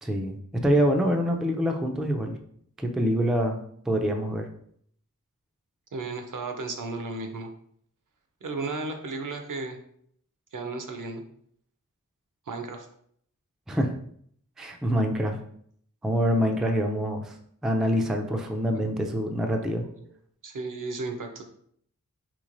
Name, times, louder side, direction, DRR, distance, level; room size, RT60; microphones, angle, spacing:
voice 1, 0.0-2.4 2.8-3.6 3.9-4.5 13.7-13.9 14.6-15.4 16.0-17.4 17.6-19.8, equal, ahead, 3 dB, 0.3 m, -25 dB
voice 2, 5.9-7.5 8.4-9.8 10.5-11.2 12.5-12.9 18.7-18.8 19.8-19.9 20.4-21.4, right 3 dB, 65° right, 5 dB, 0.6 m, -34 dB
3.8 x 3.1 x 2.5 m, 0.65 s
wide cardioid pair, 70°, 34 cm